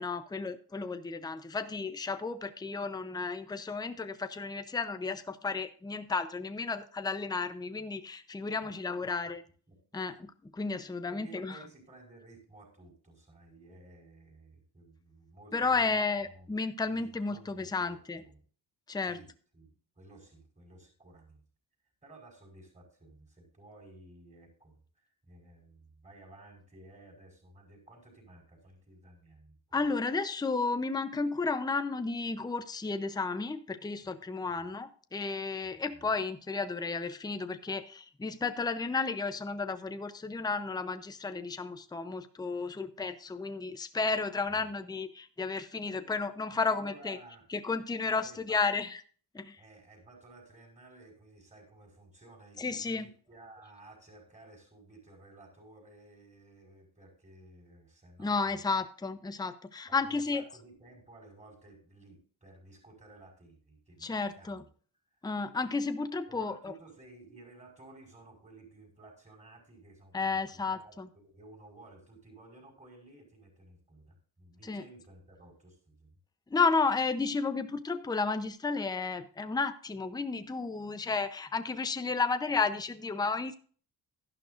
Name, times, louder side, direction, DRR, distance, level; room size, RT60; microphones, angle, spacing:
voice 1, 0.0-9.4 9.9-11.6 15.5-18.2 18.9-19.2 29.7-47.2 47.5-49.0 49.3-49.6 52.6-53.1 58.2-60.4 64.0-64.6 65.2-66.7 70.1-71.1 74.6-74.8 76.5-83.5, left 4 dB, 10° left, 9 dB, 0.7 m, -32 dB
voice 2, 11.0-16.5 16.8-18.4 19.0-21.4 22.0-29.8 34.5-34.8 35.6-36.2 44.4-44.7 46.5-47.5 48.0-48.6 49.6-58.7 59.9-64.7 65.1-65.2 66.3-76.2, right 2 dB, 15° right, -1 dB, 5.2 m, -55 dB
13.0 x 11.5 x 2.6 m, 0.43 s
cardioid pair, 135°, 43 cm